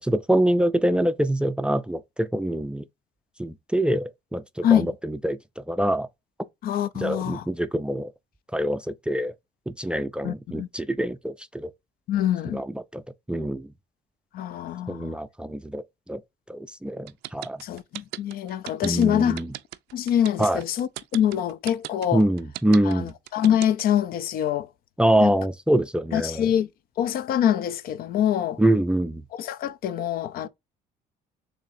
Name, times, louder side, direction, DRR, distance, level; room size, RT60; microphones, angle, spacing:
voice 1, 0.0-2.8 3.4-6.1 7.0-8.1 8.5-9.3 9.7-11.7 12.5-13.0 13.3-13.7 14.9-16.2 16.5-17.6 18.8-19.5 20.4-20.6 22.1-23.1 25.0-26.5 28.6-29.2, right 1 dB, 5° right, 0.3 m, -25 dB
voice 2, 6.6-7.4 10.2-10.7 12.1-12.6 14.3-15.1 17.6-19.4 19.9-22.2 22.9-24.7 25.2-25.3 26.1-26.7 27.0-28.6 29.3-30.5, left 10 dB, 60° left, 0.5 m, -25 dB
sound 1, 17.1-24.0, right 16 dB, 85° right, 0.5 m, -36 dB
7.0 x 2.7 x 2.6 m
cardioid pair, 110°, 17 cm